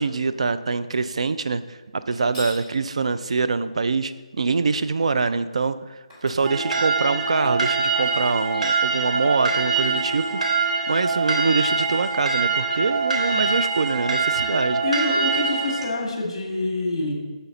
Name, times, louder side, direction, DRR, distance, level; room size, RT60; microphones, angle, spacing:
voice 1, 0.0-5.8 6.2-14.8, right 4 dB, 60° right, 13 dB, 0.3 m, -24 dB
sound 1, 2.1-2.7 5.6-5.7 6.1-7.5, equal, 15° right, 2.1 m, -42 dB
sound 2, 6.4-15.9, right 4 dB, 85° right, 1.4 m, -24 dB
voice 2, 14.8-17.1, left 2 dB, 40° left, 1 dB, 1.8 m, -26 dB
7.0 x 6.8 x 3.9 m, 1.3 s
hypercardioid pair, 175°, 4 cm